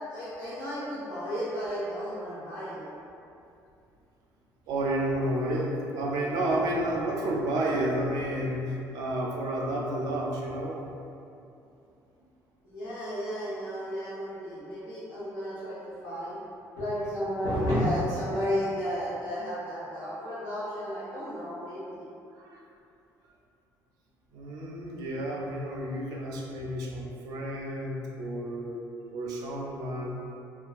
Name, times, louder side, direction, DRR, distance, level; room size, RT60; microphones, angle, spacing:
voice 1, 0.1-2.9 6.5-6.6 12.6-16.4 16.7-22.0, equal, 75° left, -13 dB, 0.8 m, -32 dB
voice 2, 4.7-10.8 22.4-22.6 24.3-28.8 29.1-30.3, right 1 dB, 70° right, -2 dB, 0.4 m, -31 dB
2.5 x 2.2 x 2.4 m, 2.7 s
cardioid pair, 170°, 7 cm